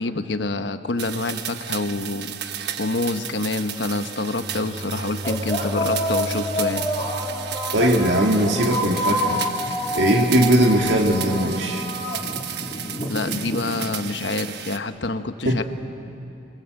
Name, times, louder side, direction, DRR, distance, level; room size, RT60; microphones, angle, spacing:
voice 1, 0.0-2.3 2.8-6.9 13.1-15.6, left 2 dB, 70° left, 9 dB, 1.1 m, -27 dB
sound 1, 1.0-14.8, right 10 dB, 65° right, 1.2 m, -34 dB
sound 2, 3.2-3.3 4.2-4.4 5.2-14.1, left 1 dB, 35° left, 3.1 m, -28 dB
Bowed string instrument, 4.2-8.7, equal, 35° right, 3.4 m, -35 dB
voice 2, 7.7-9.4 9.9-11.9 15.5-15.6, right 1 dB, 85° right, 0 dB, 2.1 m, -19 dB
28.0 x 23.5 x 7.9 m, 2.6 s
head